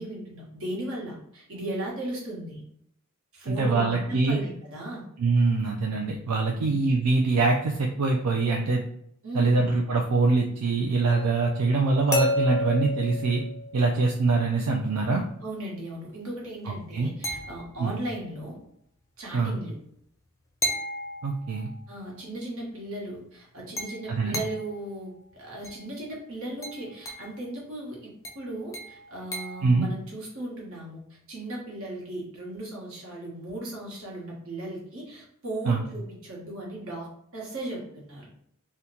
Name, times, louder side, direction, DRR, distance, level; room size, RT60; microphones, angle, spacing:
voice 1, 0.0-2.6 3.3-5.0 9.2-9.7 15.4-18.6 19.2-19.8 21.9-28.1 28.3-31.0 31.3-38.3, right 1 dB, 65° right, -3 dB, 1.2 m, -37 dB
voice 2, 3.6-4.4 5.2-8.8 9.3-13.4 13.7-15.2 16.7-17.1 17.8-17.9 19.3-19.6 21.2-21.7 24.1-24.4 29.6-29.9 35.7-35.8, right 3 dB, 85° right, 1 dB, 0.4 m, -24 dB
sound 1, 11.1-14.2 17.2-18.1 20.6-21.8 23.8-24.8 25.6-25.9 26.6-27.4 28.2-29.7, left 1 dB, 15° left, 0.5 m, -33 dB
2.8 x 2.2 x 3.7 m, 0.71 s
head